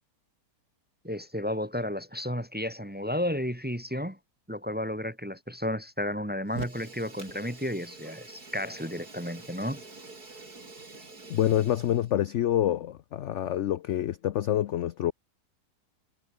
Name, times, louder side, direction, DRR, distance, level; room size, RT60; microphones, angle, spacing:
voice 1, 1.0-4.2 4.5-9.8, left 1 dB, 5° right, 1.2 m, -32 dB
Fire, 6.5-12.1, right 3 dB, 65° right, 4.9 m, -46 dB
voice 2, 11.3-15.1, left 12 dB, 65° left, 0.7 m, -27 dB
omnidirectional pair, 1.7 m